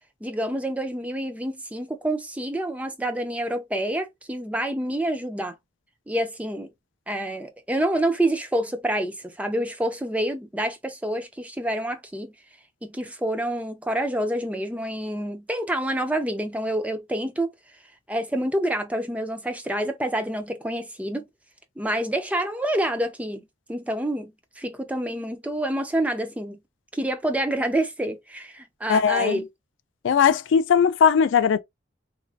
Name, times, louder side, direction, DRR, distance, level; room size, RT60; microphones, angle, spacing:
voice 1, 0.2-5.5 6.1-6.7 7.1-12.3 12.8-17.5 18.1-21.2 21.8-23.4 23.7-24.3 24.6-26.6 26.9-29.4, right 1 dB, 5° right, 0.4 m, -27 dB
voice 2, 28.9-29.4 30.0-31.6, left 7 dB, 75° left, 0.3 m, -19 dB
3.0 x 2.6 x 2.3 m
head